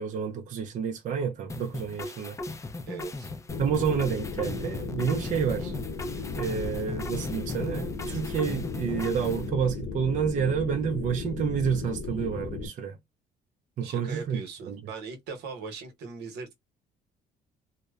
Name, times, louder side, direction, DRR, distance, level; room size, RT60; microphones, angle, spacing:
voice 1, 0.0-2.4 3.6-5.7 6.4-13.0 13.8-14.4 14.7-14.8, right 7 dB, 50° right, 0.5 m, -29 dB
sound 1, 1.5-9.5, left 2 dB, 20° left, 0.4 m, -37 dB
voice 2, 2.9-3.3 13.8-16.5, right 4 dB, 80° right, 0.9 m, -39 dB
sound 2, 3.5-12.7, left 4 dB, 80° left, 0.8 m, -36 dB
2.7 x 2.1 x 2.3 m
cardioid pair, 110°, 17 cm